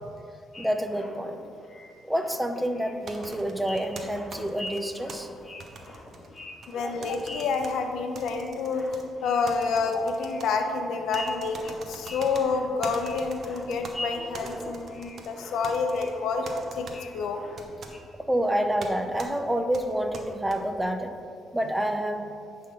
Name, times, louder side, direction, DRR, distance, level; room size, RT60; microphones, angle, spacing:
sound 1, 0.5-18.0, left 1 dB, 30° left, 1.3 m, -44 dB
voice 1, 0.6-1.4 2.0-5.3 6.8-6.9 14.2-14.7 18.3-21.2 21.5-22.3, right 1 dB, 5° right, 6 dB, 0.7 m, -28 dB
sound 2, 3.1-5.2 5.6-6.7 7.0-7.7 8.2-9.0 9.5-10.5 11.1-12.4 12.8-13.9 14.3-15.3 15.6-16.1 16.5-17.0 17.6-17.9 18.8-18.9 19.2-19.3 19.7-20.6, right 4 dB, 55° right, 1.0 m, -43 dB
voice 2, 6.7-16.5 16.7-17.4, left 4 dB, 80° left, 4 dB, 0.7 m, -28 dB
10.0 x 3.7 x 5.6 m, 2.5 s
cardioid pair, 90°, 0 cm